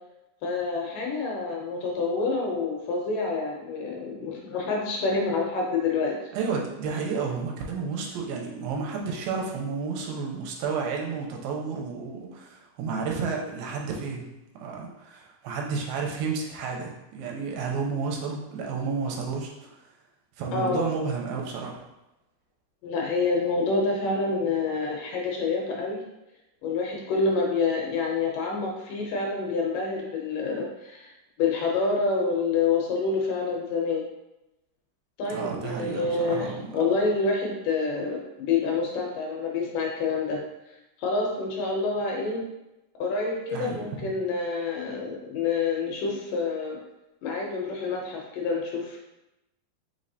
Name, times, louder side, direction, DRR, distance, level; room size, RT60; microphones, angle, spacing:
voice 1, 0.4-6.1 20.5-20.8 22.8-26.0 26.6-31.1 31.4-34.1 35.2-40.4 41.0-42.4 43.0-46.8 47.2-49.0, left 4 dB, 75° left, -1 dB, 2.1 m, -27 dB
voice 2, 6.3-14.3 14.6-19.7 20.4-21.8 35.3-36.7 43.5-44.1, right 5 dB, 85° right, 0 dB, 2.3 m, -31 dB
5.2 x 3.2 x 2.7 m, 0.93 s
omnidirectional pair, 4.1 m